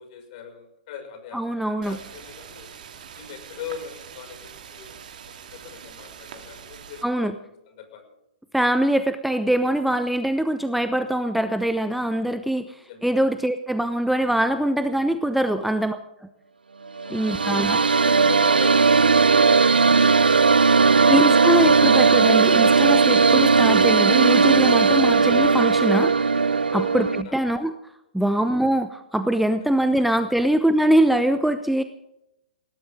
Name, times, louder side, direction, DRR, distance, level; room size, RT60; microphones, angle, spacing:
voice 1, 0.0-2.7 3.1-5.0 5.4-7.3 7.7-8.1 11.0-11.2 12.7-13.1 15.6-15.8 17.0-17.4 17.8-21.2 26.7-26.9 27.2-27.4 28.2-28.4, left 8 dB, 45° left, 5 dB, 6.0 m, -41 dB
voice 2, 1.3-2.0 7.0-7.3 8.5-16.3 17.1-17.8 21.1-26.4 26.7-27.1 27.3-27.7 28.1-31.8, right 1 dB, ahead, 9 dB, 0.9 m, -23 dB
sound 1, 1.8-7.0, right 7 dB, 60° right, 2.8 m, -43 dB
sound 2, 17.0-27.2, right 4 dB, 85° right, 0.6 m, -17 dB
20.0 x 18.5 x 3.7 m, 0.85 s
figure-of-eight pair, 115°, 5 cm